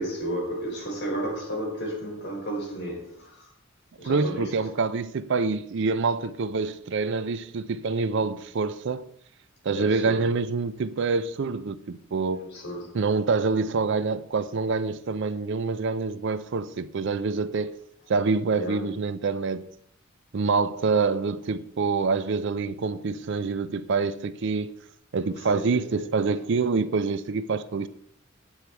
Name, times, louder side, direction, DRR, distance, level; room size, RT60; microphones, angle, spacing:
voice 1, 0.0-3.5 4.0-4.6 9.7-10.3 12.3-13.0 18.5-18.9 25.4-26.1, right 1 dB, 55° left, 4.3 m, -33 dB
voice 2, 4.0-9.1 9.6-12.5 12.9-17.7 18.1-19.7 20.3-24.7 25.1-27.9, right 4 dB, 60° right, 0.5 m, -26 dB
8.8 x 8.1 x 4.5 m
head